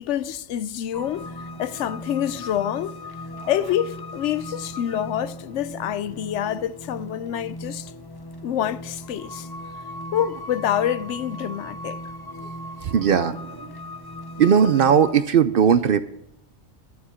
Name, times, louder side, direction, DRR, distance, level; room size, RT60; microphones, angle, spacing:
voice 1, 0.0-3.0 3.5-7.9 8.4-9.5 10.1-12.0, left 10 dB, 75° left, 0.9 m, -27 dB
sound 1, 0.9-15.1, left 1 dB, 25° left, 0.7 m, -38 dB
voice 2, 12.8-13.7 14.4-16.0, right 7 dB, 60° right, 0.7 m, -18 dB
11.0 x 9.6 x 5.7 m
omnidirectional pair, 1.3 m